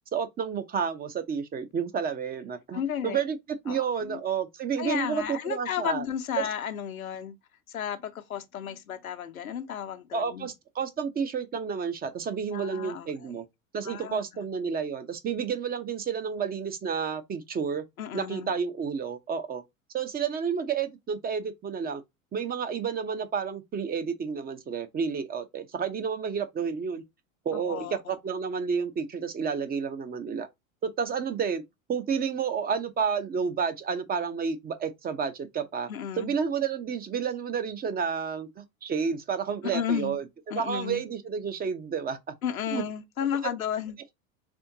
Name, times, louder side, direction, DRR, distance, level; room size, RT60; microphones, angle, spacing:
voice 1, 0.1-3.4 3.6-6.0 6.4-6.5 10.1-13.4 13.7-17.8 18.1-19.6 19.9-22.0 22.3-27.0 27.4-30.5 30.8-31.6 31.9-35.9 36.2-42.2 42.7-42.8 43.2-43.5, right 6 dB, 20° right, 0.7 m, -30 dB
voice 2, 2.7-3.2 3.7-4.2 4.8-7.4 7.7-10.5 12.5-13.3 13.8-14.4 18.0-18.6 27.5-28.2 35.9-36.4 39.6-40.2 40.5-41.0 42.4-44.0, left 9 dB, 80° left, 0.8 m, -33 dB
4.4 x 3.5 x 2.7 m
figure-of-eight pair, 80°, 41 cm